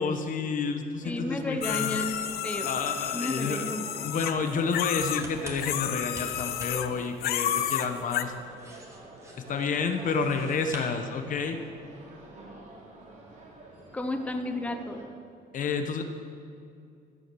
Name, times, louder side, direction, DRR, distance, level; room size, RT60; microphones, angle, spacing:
voice 1, 0.0-2.0 2.6-3.7 4.0-8.3 9.5-11.6 15.5-16.0, left 5 dB, 50° left, 7 dB, 1.1 m, -30 dB
sound 1, 0.9-11.7, right 1 dB, 15° right, 2.0 m, -49 dB
voice 2, 1.0-2.2 2.4-2.8 3.1-4.1 13.9-15.0, left 1 dB, 10° left, 6 dB, 0.8 m, -33 dB
sound 2, 1.0-15.0, right 2 dB, 45° right, 3.1 m, -47 dB
sound 3, 1.6-5.2 5.6-6.9 7.2-8.2, left 11 dB, 65° left, 0.6 m, -31 dB
15.0 x 6.3 x 6.9 m, 2.4 s
cardioid pair, 110°, 17 cm